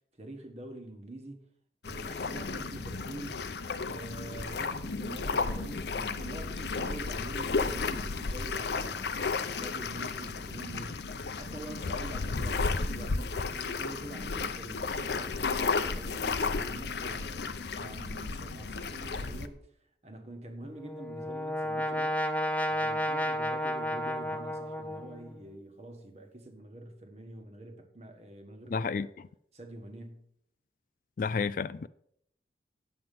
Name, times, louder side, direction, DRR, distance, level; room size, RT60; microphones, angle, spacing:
voice 1, 0.2-1.4 1.8-3.5 3.8-9.2 9.6-19.6 20.0-22.1 22.7-29.1 29.5-30.3, right 1 dB, 40° right, 1.3 m, -45 dB
sound 1, 1.8-19.5, left 4 dB, 75° left, 0.7 m, -33 dB
Brass instrument, 20.6-25.4, equal, 10° left, 0.6 m, -32 dB
voice 2, 28.7-29.1 31.2-31.9, left 5 dB, 50° left, 0.3 m, -30 dB
9.1 x 7.8 x 5.2 m
head